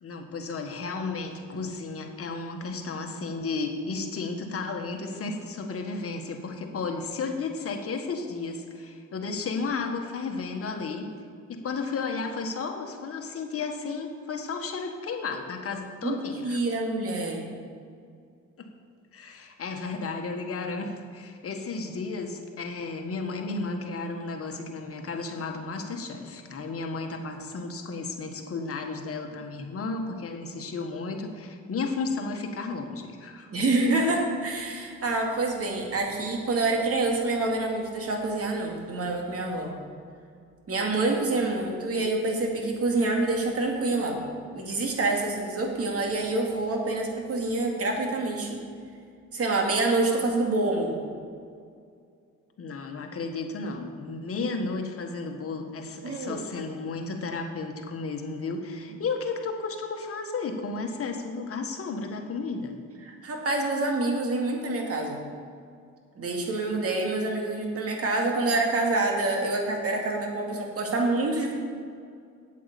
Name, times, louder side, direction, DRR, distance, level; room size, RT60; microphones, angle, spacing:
voice 1, 0.0-11.1 11.5-16.6 18.6-18.7 19.1-33.5 52.6-62.8, left 4 dB, 50° left, 3 dB, 1.6 m, -33 dB
voice 2, 16.4-17.4 33.5-39.7 40.7-44.2 44.5-48.6 49.3-50.9 56.0-56.4 63.1-65.2 66.2-71.5, right 2 dB, 50° right, 1 dB, 2.4 m, -27 dB
8.7 x 8.4 x 7.0 m, 2.3 s
cardioid pair, 90°, 30 cm